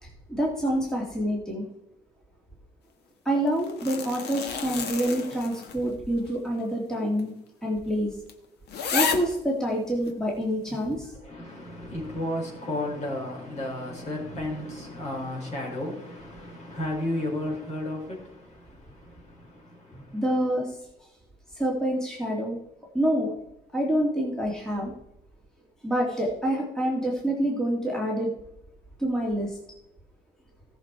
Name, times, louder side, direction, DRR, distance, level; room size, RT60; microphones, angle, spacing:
voice 1, 0.0-1.7 3.3-7.3 7.6-8.2 8.9-11.1 20.1-20.8 21.5-22.6 22.9-23.3 23.7-24.9 25.8-28.3 29.0-29.6, equal, 5° left, 2.3 m, -27 dB
sound 1, 3.5-5.9 6.3-6.4 7.2-7.3 7.7-7.8 8.3-8.4 8.7-9.4 10.1-10.2, left 6 dB, 70° left, 1.5 m, -31 dB
voice 2, 11.2-20.2, left 1 dB, 40° left, 5.0 m, -33 dB
17.5 x 6.4 x 4.6 m
cardioid pair, 150°, 18 cm